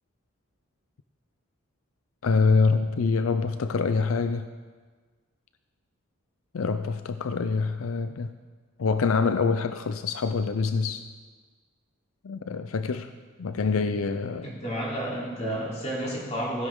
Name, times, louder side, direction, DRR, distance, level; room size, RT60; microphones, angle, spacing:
voice 1, 2.2-4.5 6.5-8.3 8.8-11.1 12.2-13.1 13.4-14.5, left 4 dB, 90° left, 10 dB, 0.5 m, -25 dB
voice 2, 14.4-16.7, right 1 dB, 35° left, -5 dB, 3.4 m, -31 dB
16.0 x 10.0 x 3.7 m, 1.5 s
head